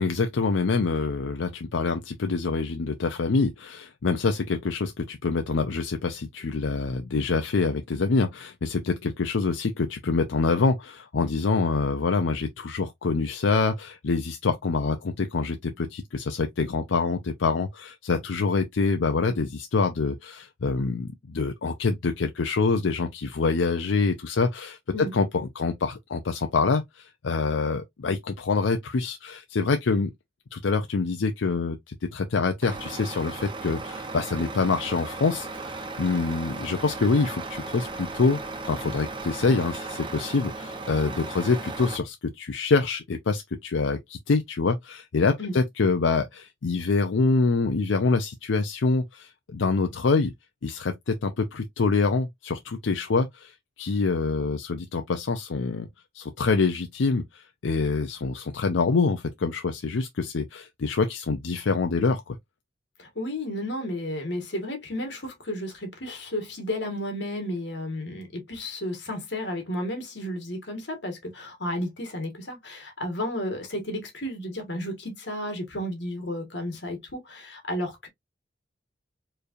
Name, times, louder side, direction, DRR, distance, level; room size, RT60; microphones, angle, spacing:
voice 1, 0.0-30.1 30.5-38.4 38.6-50.3 50.6-55.9 56.1-62.4, left 4 dB, 90° left, 0.5 m, -26 dB
Truck, 32.6-42.0, right 3 dB, 25° right, 0.8 m, -36 dB
voice 2, 63.0-78.1, left 1 dB, 70° left, 1.7 m, -32 dB
4.5 x 3.2 x 2.5 m
head